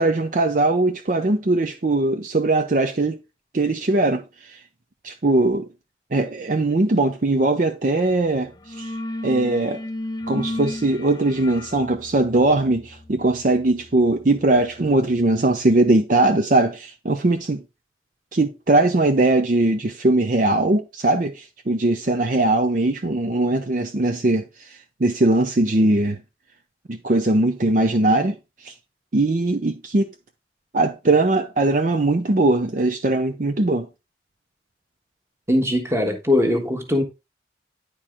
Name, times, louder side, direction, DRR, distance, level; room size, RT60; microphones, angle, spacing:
voice 1, 0.0-3.2 3.5-4.6 5.0-5.7 6.1-8.5 8.8-8.9 9.2-9.8 10.3-17.6 18.3-26.2 26.9-28.4 28.6-28.7 29.1-30.1 30.7-33.9, right 2 dB, 45° right, 0.6 m, -20 dB
sound 1, 7.9-8.2 8.5-15.1, left 1 dB, 20° left, 0.5 m, -35 dB
voice 2, 35.5-37.0, left 1 dB, 15° right, 1.3 m, -20 dB
9.9 x 4.6 x 3.5 m
head